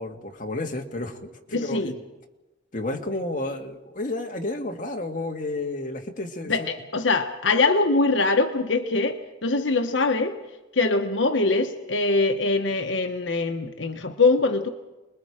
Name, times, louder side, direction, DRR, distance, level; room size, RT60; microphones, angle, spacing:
voice 1, 0.0-2.0 2.7-6.7, left 2 dB, 45° left, 2 dB, 2.3 m, -31 dB
voice 2, 1.5-1.9 6.5-10.4 10.7-14.7, left 3 dB, 85° left, 6 dB, 1.2 m, -23 dB
29.0 x 21.5 x 5.1 m, 1.1 s
head